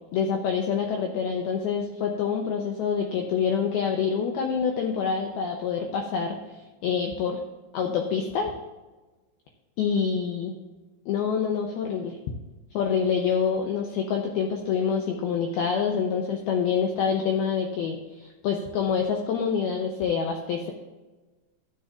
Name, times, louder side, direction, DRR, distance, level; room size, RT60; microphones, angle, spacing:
voice 1, 0.1-6.6 6.8-7.4 7.7-8.6 9.8-10.6 11.1-12.2 12.7-20.7, left 6 dB, 75° left, 2 dB, 2.3 m, -26 dB
15.0 x 7.7 x 2.5 m, 1.2 s
omnidirectional pair, 5.3 m